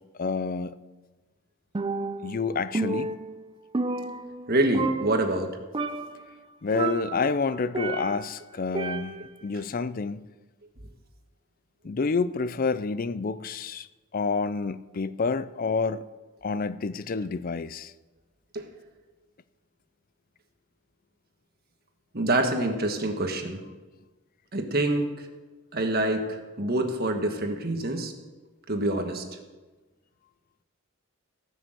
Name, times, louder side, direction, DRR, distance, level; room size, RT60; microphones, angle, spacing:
voice 1, 0.2-0.8 2.2-3.1 6.6-9.2 9.4-10.3 11.8-13.9 14.1-16.0 16.4-17.9, left 4 dB, 40° left, 0.4 m, -28 dB
Percussion, 1.7-2.4 2.7-4.5 4.7-5.4 5.7-6.3 6.7-8.3 8.7-9.4, right 3 dB, 25° right, 0.5 m, -31 dB
voice 2, 4.5-5.6 18.5-18.7 22.1-23.6 24.5-25.3 25.7-28.1 28.7-29.2, right 2 dB, 45° right, 1.5 m, -26 dB
17.0 x 6.5 x 7.7 m
head